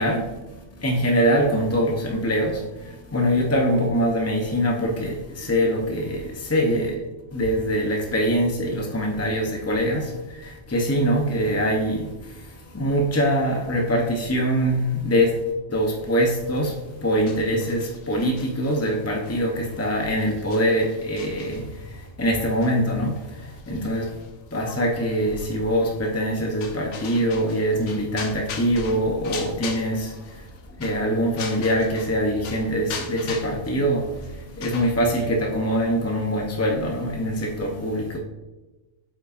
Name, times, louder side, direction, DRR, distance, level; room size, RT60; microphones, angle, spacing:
voice 1, 0.0-7.0 7.3-15.4 15.7-24.2 24.5-30.5 30.8-38.2, equal, 20° left, 0 dB, 0.4 m, -24 dB
sound 1, 16.4-32.2 32.4-35.1, left 5 dB, 75° left, 1.1 m, -41 dB
8.3 x 5.4 x 2.4 m, 1.1 s
omnidirectional pair, 1.3 m